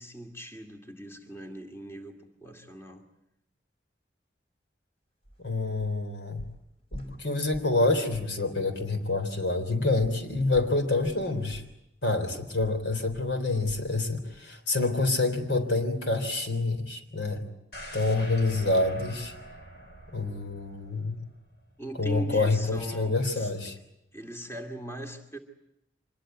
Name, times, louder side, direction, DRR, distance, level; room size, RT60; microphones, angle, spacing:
voice 1, 0.0-3.0 21.8-23.5 24.1-25.4, right 1 dB, 15° left, 4 dB, 2.3 m, -40 dB
sound 1, 5.2-5.4 5.8-6.0 6.4-7.8 8.1-8.4 8.8-8.9 10.0-14.0 14.3-14.5 14.9-15.0, right 1 dB, 35° left, 4.9 m, -47 dB
voice 2, 5.4-6.5 6.9-11.6 12.0-17.5 17.9-19.3 20.1-21.3 22.0-23.8, left 2 dB, 85° left, 7 dB, 3.6 m, -27 dB
sound 2, 17.7-21.7 22.1-22.2, equal, 60° left, 5.0 m, -45 dB
25.5 x 21.0 x 9.1 m, 0.82 s
head